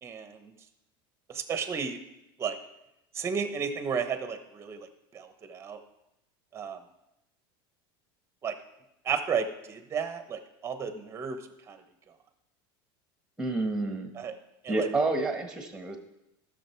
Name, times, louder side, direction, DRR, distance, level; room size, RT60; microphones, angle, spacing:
voice 1, 0.0-0.5 1.3-2.0 2.4-2.6 3.1-4.9 5.1-5.8 6.5-6.8 8.4-8.5 9.0-11.4 11.7-11.8 14.2-14.3 14.6-14.9, right 6 dB, 20° right, 9 dB, 1.0 m, -33 dB
voice 2, 13.4-14.1 14.7-16.0, right 2 dB, 5° right, 5 dB, 1.4 m, -29 dB
14.0 x 6.7 x 4.5 m, 0.89 s
supercardioid pair, 150°, 13 cm